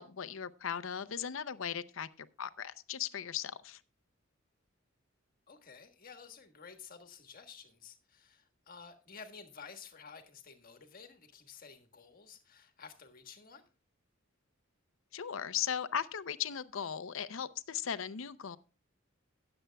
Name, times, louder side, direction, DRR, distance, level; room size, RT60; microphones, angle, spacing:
voice 1, 0.0-3.8 15.1-18.6, left 8 dB, 75° left, 14 dB, 0.6 m, -37 dB
voice 2, 5.5-13.6, left 5 dB, 45° left, 7 dB, 1.4 m, -52 dB
19.0 x 7.9 x 2.2 m, 0.35 s
head